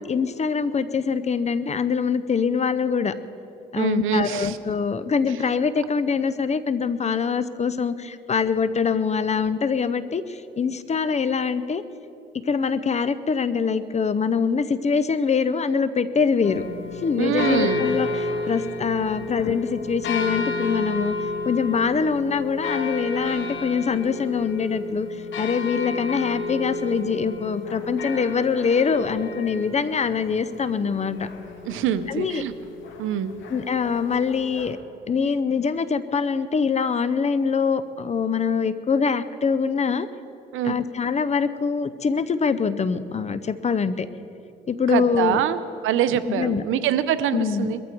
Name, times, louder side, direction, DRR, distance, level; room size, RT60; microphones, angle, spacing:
voice 1, 0.1-3.1 3.7-11.8 12.3-16.7 17.0-21.2 21.4-25.1 25.4-31.3 32.1-32.4 33.5-34.8 35.1-40.1 40.6-44.1 44.7-45.4 46.2-46.6 47.3-47.7, left 5 dB, 35° left, 14 dB, 0.7 m, -24 dB
voice 2, 3.8-4.6 17.2-17.8 31.6-32.5 33.0-33.3 40.5-40.8 44.9-47.8, right 10 dB, 85° right, 12 dB, 0.8 m, -24 dB
sound 1, 16.4-34.7, left 3 dB, 75° left, 2.0 m, -32 dB
21.5 x 14.0 x 4.6 m, 2.8 s
cardioid pair, 90°, 20 cm